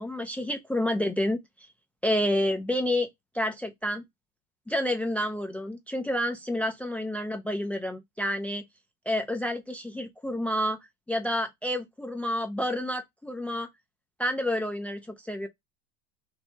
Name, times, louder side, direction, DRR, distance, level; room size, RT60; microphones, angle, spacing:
voice 1, 0.0-1.7 2.0-3.1 3.3-4.0 4.7-8.6 9.1-10.8 11.1-13.7 14.2-15.5, left 1 dB, 5° left, 0.4 m, -29 dB
4.4 x 2.8 x 3.3 m
supercardioid pair, 145°, 37 cm